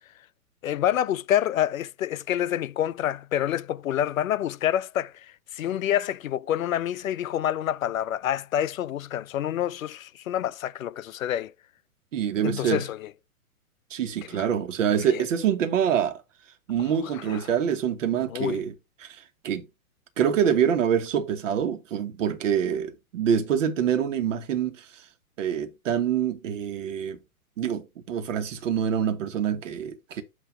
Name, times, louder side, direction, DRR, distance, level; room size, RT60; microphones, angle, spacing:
voice 1, 0.6-11.5 12.4-13.1 14.3-14.5 15.1-15.2 16.9-17.4 18.3-18.6, left 11 dB, 65° left, 0.6 m, -27 dB
voice 2, 12.1-12.8 13.9-16.2 16.7-18.7 19.0-19.1 19.4-19.7 20.2-24.8 25.4-27.2 27.6-30.2, right 8 dB, 60° right, 1.4 m, -25 dB
8.0 x 3.0 x 5.0 m
hypercardioid pair, 120°, 44 cm